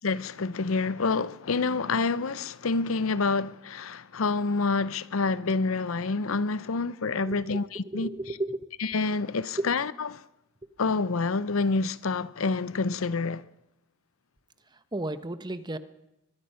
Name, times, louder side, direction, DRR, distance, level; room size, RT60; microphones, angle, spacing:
voice 1, 0.0-8.1 8.8-10.2 10.8-13.4, left 4 dB, 75° left, 0.7 m, -27 dB
voice 2, 7.2-8.6 9.6-9.7 14.9-15.8, right 2 dB, 20° right, 1.1 m, -33 dB
24.0 x 21.5 x 5.7 m
head